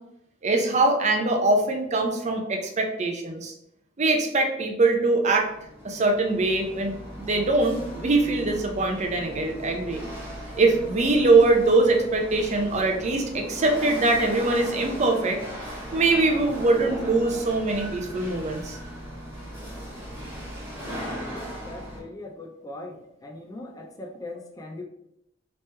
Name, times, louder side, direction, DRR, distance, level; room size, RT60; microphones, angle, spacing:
voice 1, 0.4-3.5 4.0-5.5 5.8-10.0 10.5-15.4 15.9-18.8, right 2 dB, 35° right, 3 dB, 0.5 m, -22 dB
Chatter / Hiss / Rattle, 5.1-22.0, equal, 10° right, 1.2 m, -38 dB
voice 2, 21.3-24.8, left 2 dB, 20° left, 2 dB, 0.4 m, -40 dB
3.1 x 3.0 x 3.2 m, 0.79 s
head